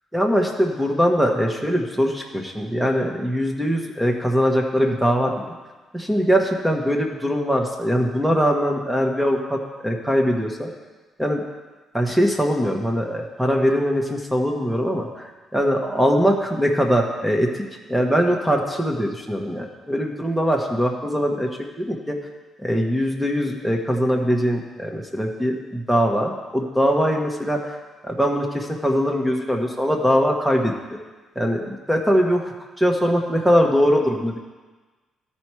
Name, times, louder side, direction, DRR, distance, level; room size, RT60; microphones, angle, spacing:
voice 1, 0.1-5.5 5.9-10.7 11.2-11.4 11.9-17.5 17.9-21.5 21.8-22.2 22.6-27.8 28.0-30.7 31.3-34.4, equal, 5° right, 1 dB, 1.1 m, -21 dB
13.0 x 4.4 x 4.7 m, 1.3 s
cardioid pair, 90°, 0 cm